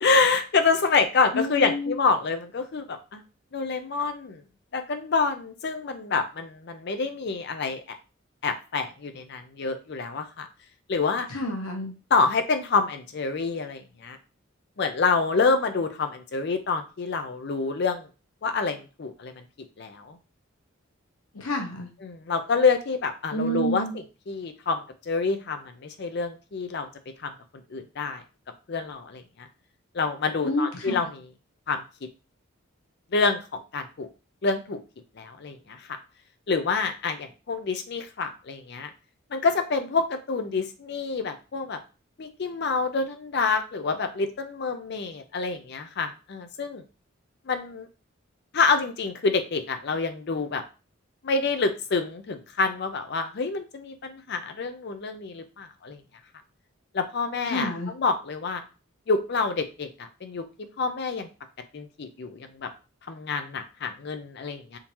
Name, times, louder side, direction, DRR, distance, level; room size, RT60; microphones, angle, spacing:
voice 1, 0.0-3.2 3.5-4.4 4.7-8.0 8.4-10.5 10.9-11.3 12.1-14.2 14.8-18.1 18.4-19.4 19.8-20.2 22.0-26.9 27.2-27.3 27.7-28.2 28.7-29.5 29.9-31.3 31.7-32.1 33.1-34.1 34.4-34.8 35.2-35.9 36.5-38.9 39.3-41.8 42.2-46.8 47.5-47.9 48.5-50.6 51.2-56.0 56.9-58.6 59.1-60.5 60.8-61.3 61.7-62.7 63.1-64.8, left 4 dB, 50° left, 8 dB, 0.4 m, -27 dB
voice 2, 1.3-1.9 11.3-11.9 21.3-21.9 23.3-23.9 30.4-31.0 57.5-57.9, equal, 85° left, 2 dB, 0.9 m, -29 dB
3.6 x 2.7 x 2.9 m, 0.32 s
head